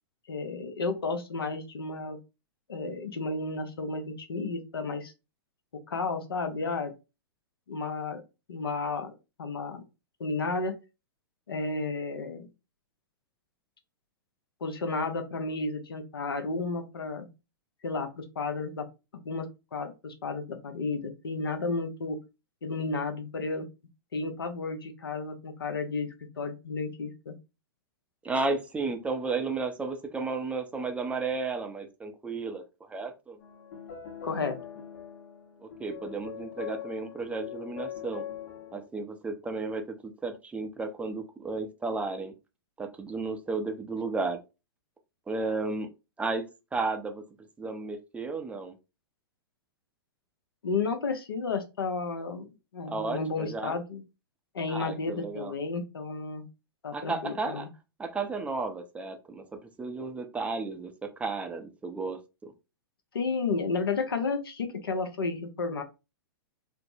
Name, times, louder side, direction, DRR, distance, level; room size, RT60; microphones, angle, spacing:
voice 1, 0.3-2.2 2.7-5.1 5.9-6.9 7.7-8.2 8.5-9.1 9.4-9.8 10.2-10.7 11.5-12.5 14.6-17.3 17.8-18.9 19.1-19.5 19.7-22.2 22.6-23.7 24.1-27.3 34.2-34.6 50.6-52.5 52.7-54.0 54.5-56.5 56.8-57.7 63.1-65.8, left 3 dB, 75° left, 7 dB, 0.7 m, -32 dB
voice 2, 28.2-32.6 32.9-33.4 35.6-38.2 38.7-42.3 42.8-44.4 45.3-45.9 46.2-46.4 46.7-47.2 47.6-48.8 52.9-53.8 54.7-55.5 56.9-57.7 58.0-59.4 59.8-62.5, right 3 dB, 10° right, 5 dB, 0.4 m, -33 dB
sound 1, 33.4-38.9, left 9 dB, 55° left, 1.0 m, -42 dB
3.4 x 2.0 x 2.6 m, 0.27 s
figure-of-eight pair, 105°, 12 cm